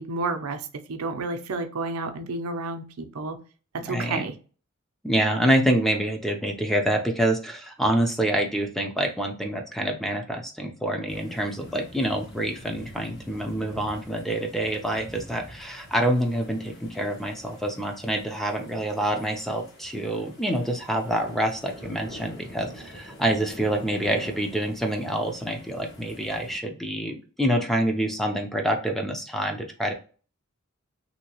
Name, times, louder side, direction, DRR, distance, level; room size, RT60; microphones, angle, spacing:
voice 1, 0.0-3.4 3.7-4.3, right 3 dB, 85° right, 0.6 m, -31 dB
voice 2, 3.9-4.2 5.0-29.9, right 1 dB, ahead, 0.5 m, -26 dB
sound 1, 11.1-26.6, equal, 50° left, 1.2 m, -46 dB
3.0 x 2.8 x 2.9 m
head